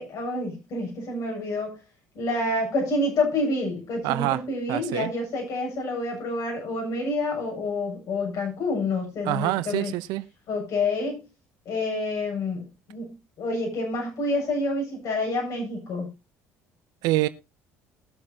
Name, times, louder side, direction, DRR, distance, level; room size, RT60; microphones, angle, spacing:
voice 1, 0.0-1.8 2.1-9.9 10.5-11.3 11.6-16.1, left 2 dB, 55° left, 7.8 m, -28 dB
voice 2, 4.0-4.4 4.7-5.1 9.2-10.3 17.0-17.3, right 17 dB, 70° right, 0.8 m, -25 dB
21.5 x 7.5 x 2.9 m
hypercardioid pair, 65°, 7 cm